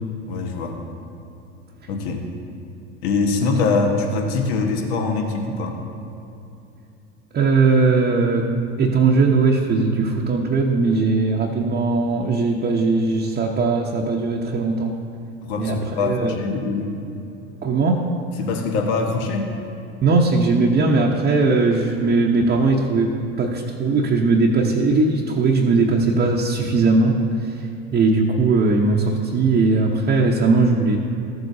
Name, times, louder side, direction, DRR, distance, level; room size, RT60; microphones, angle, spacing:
voice 1, 0.3-0.8 1.9-2.2 3.0-5.8 15.4-17.0 18.4-19.5, left 4 dB, 70° left, 2 dB, 1.3 m, -23 dB
voice 2, 7.3-8.5 8.8-14.9 15.6-16.3 17.6-18.1 20.0-27.7 27.9-31.0, right 3 dB, 30° right, -2 dB, 0.9 m, -19 dB
13.5 x 7.8 x 2.7 m, 2.6 s
hypercardioid pair, 90°, 33 cm